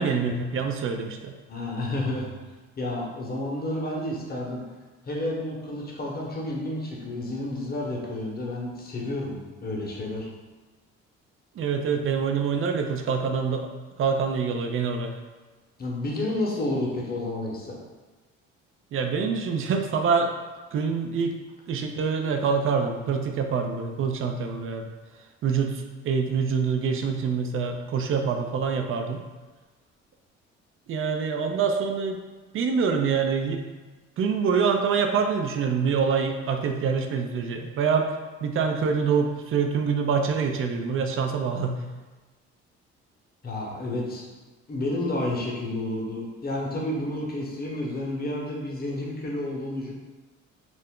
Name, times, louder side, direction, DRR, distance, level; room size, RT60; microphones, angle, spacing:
voice 1, 0.0-1.3 11.6-13.7 14.0-15.1 18.9-20.3 20.7-21.4 21.7-24.9 25.4-29.2 30.9-32.2 32.5-33.6 34.2-38.1 38.4-41.7, right 5 dB, 45° right, 5 dB, 0.4 m, -25 dB
voice 2, 1.5-2.3 2.8-4.6 5.0-9.4 9.6-10.3 15.8-17.8 43.4-44.3 44.7-49.9, left 1 dB, 30° left, -3 dB, 0.9 m, -30 dB
2.5 x 2.1 x 3.6 m, 1.3 s
supercardioid pair, 70°, 30 cm